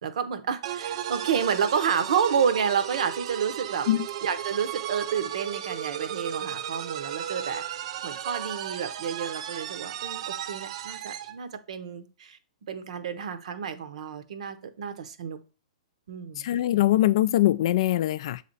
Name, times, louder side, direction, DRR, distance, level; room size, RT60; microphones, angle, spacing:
voice 1, 0.0-3.9 4.2-7.6 8.0-12.4 12.7-15.4 16.1-16.6, right 7 dB, 70° right, 0.8 m, -30 dB
sound 1, 0.6-11.4, right 10 dB, 50° right, 0.4 m, -35 dB
voice 2, 16.4-18.4, left 14 dB, 50° left, 0.3 m, -22 dB
7.2 x 3.3 x 4.0 m
hypercardioid pair, 155°, 4 cm